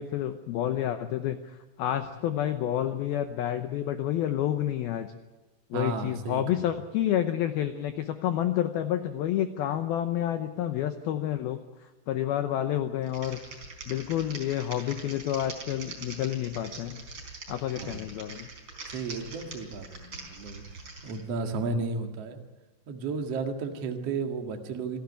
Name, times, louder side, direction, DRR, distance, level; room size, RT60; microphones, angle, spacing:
voice 1, 0.0-5.2 5.7-11.6 12.1-13.4 13.9-17.0 17.5-18.5, left 11 dB, 90° left, 9 dB, 2.1 m, -29 dB
voice 2, 5.7-6.7 17.8-18.0 18.9-20.6 21.0-22.4 22.9-25.0, right 4 dB, 50° right, 4 dB, 2.0 m, -33 dB
Typing, 13.0-21.2, right 3 dB, 30° right, 4.6 m, -43 dB
27.0 x 13.5 x 9.7 m, 1.1 s
omnidirectional pair, 5.6 m